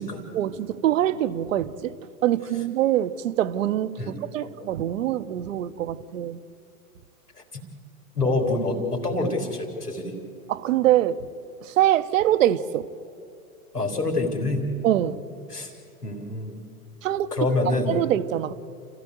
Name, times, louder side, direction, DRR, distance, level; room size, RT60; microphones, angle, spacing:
voice 1, 0.3-1.9 2.2-6.4 10.5-11.2 11.6-12.9 14.8-15.2 17.0-17.3 17.9-18.5, right 12 dB, 60° right, 1.0 m, -24 dB
voice 2, 4.0-4.5 7.5-7.6 8.1-10.1 13.7-14.6 15.5-15.7 16.0-16.5 17.3-18.0, left 2 dB, 90° left, 3.7 m, -26 dB
29.0 x 15.5 x 8.0 m
figure-of-eight pair, 100°, 45 cm